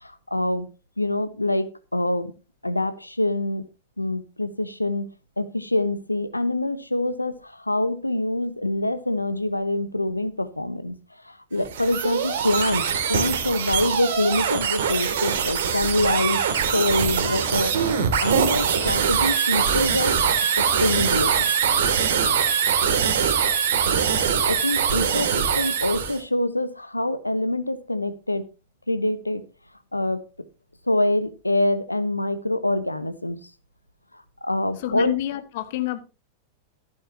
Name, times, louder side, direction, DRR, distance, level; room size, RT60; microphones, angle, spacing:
voice 1, 0.0-0.7 1.0-2.3 2.6-3.6 4.0-5.1 5.4-11.0 11.2-12.8 13.1-16.4 16.7-20.1 20.6-21.5 24.5-28.4 28.9-29.4 29.9-30.2 30.9-33.4 34.4-35.1, left 1 dB, 85° left, 1.2 m, -25 dB
sound 1, 11.6-26.2, right 7 dB, 60° right, 2.6 m, -23 dB
voice 2, 34.8-36.0, left 14 dB, 50° left, 1.6 m, -28 dB
14.0 x 11.5 x 2.9 m
figure-of-eight pair, 90°, 0 cm